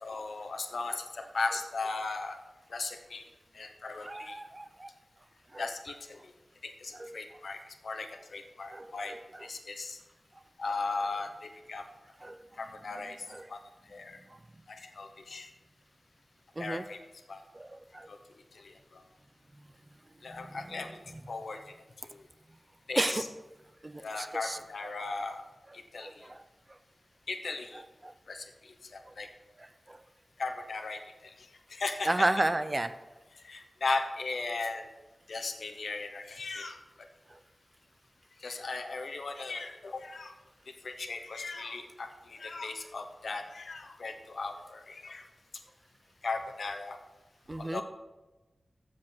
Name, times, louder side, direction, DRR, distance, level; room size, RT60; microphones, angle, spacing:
voice 1, 0.0-2.4 2.7-3.3 3.5-4.4 5.6-6.2 6.6-9.1 9.4-10.0 10.6-11.8 12.6-13.2 13.5-13.6 13.9-14.2 14.7-15.5 16.6-17.0 17.3-17.4 18.1-18.2 18.5-19.0 20.2-21.0 21.3-21.6 22.0-22.2 22.9-23.3 24.0-25.4 25.7-26.2 27.3-27.8 28.3-29.3 30.4-32.3 33.4-34.9 35.3-36.8 38.4-40.3 40.8-45.2 46.2-47.0 47.6-47.8, left 3 dB, 85° left, 6 dB, 1.0 m, -37 dB
voice 2, 4.0-4.9 5.5-5.6 8.7-8.9 12.2-12.3 13.3-13.4 16.6-16.8 17.6-18.1 23.0-23.2 23.8-24.6 26.0-26.1 28.0-28.1 32.1-32.9 47.5-47.8, right 1 dB, 25° right, 12 dB, 0.5 m, -31 dB
7.6 x 7.4 x 6.1 m, 1.1 s
wide cardioid pair, 90°, 0 cm